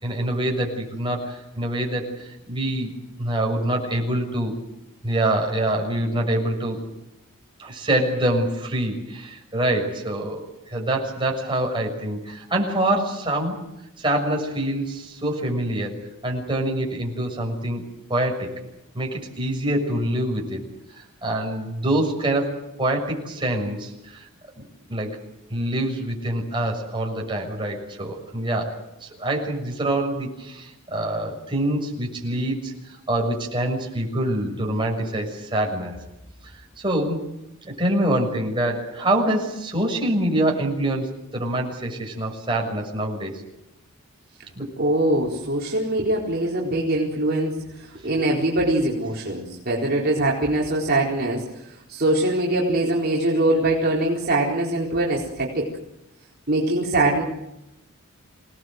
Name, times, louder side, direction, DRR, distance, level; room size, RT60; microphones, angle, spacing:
voice 1, 0.0-2.9 3.2-4.6 5.0-6.8 7.6-13.6 14.0-17.8 18.1-18.6 18.9-20.6 20.9-24.3 24.6-25.2 25.5-36.0 36.4-37.3 37.6-43.3 44.5-44.7, right 1 dB, 20° right, 1 dB, 6.6 m, -25 dB
voice 2, 44.8-51.6 51.9-55.7 56.5-57.2, right 1 dB, 45° right, -3 dB, 4.2 m, -23 dB
27.5 x 19.0 x 7.9 m, 0.90 s
head